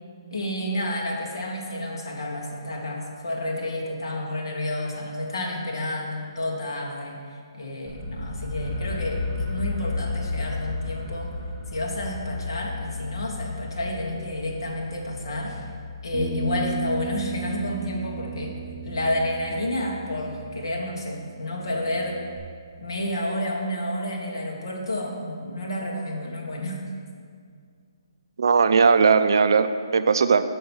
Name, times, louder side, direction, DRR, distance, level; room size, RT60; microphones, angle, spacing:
voice 1, 0.3-7.2 7.6-11.3 11.7-15.7 16.0-18.5 18.8-22.2 22.8-26.8, left 1 dB, 65° left, -1 dB, 1.5 m, -30 dB
sound 1, 7.9-19.7, left 3 dB, ahead, 0.7 m, -34 dB
Bass guitar, 16.1-20.9 21.2-22.4, right 2 dB, 25° right, 0.9 m, -34 dB
voice 2, 28.4-30.4, right 5 dB, 55° right, 11 dB, 0.4 m, -18 dB
6.4 x 5.5 x 6.1 m, 2.1 s
hypercardioid pair, 175°, 3 cm